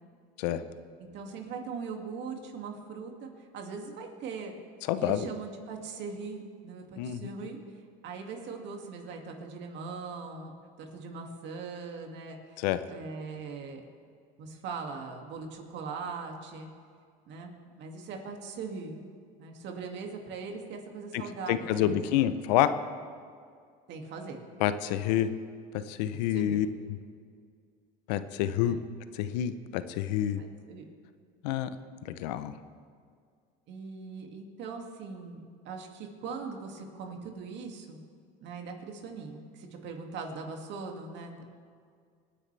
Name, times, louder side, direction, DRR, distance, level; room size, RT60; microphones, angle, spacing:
voice 1, 1.1-4.6 5.0-7.6 8.0-12.6 12.9-13.8 14.4-16.7 17.3-18.9 19.4-22.3 23.9-24.4 26.3-26.6 28.6-28.8 30.4-30.8 33.7-38.0 38.4-41.4, right 4 dB, 60° right, 2 dB, 2.4 m, -40 dB
voice 2, 4.9-5.3 7.0-7.3 12.6-12.8 21.5-22.7 24.6-25.3 25.9-27.0 28.1-28.8 29.1-30.4 31.4-31.8 32.0-32.5, left 11 dB, 80° left, 12 dB, 0.8 m, -28 dB
25.5 x 10.0 x 3.4 m, 2.1 s
supercardioid pair, 100°, 21 cm